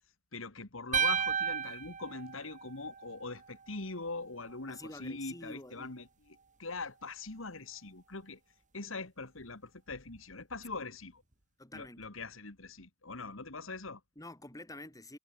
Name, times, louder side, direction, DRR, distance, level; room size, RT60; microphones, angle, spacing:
voice 1, 0.3-8.4 8.7-11.2 11.7-14.0, left 3 dB, 80° left, 2.5 m, -42 dB
sound 1, 0.9-3.2, right 7 dB, 40° right, 2.4 m, -32 dB
voice 2, 4.7-5.9 10.8-10.9 11.6-12.0 14.2-15.2, left 2 dB, 20° left, 3.7 m, -48 dB
head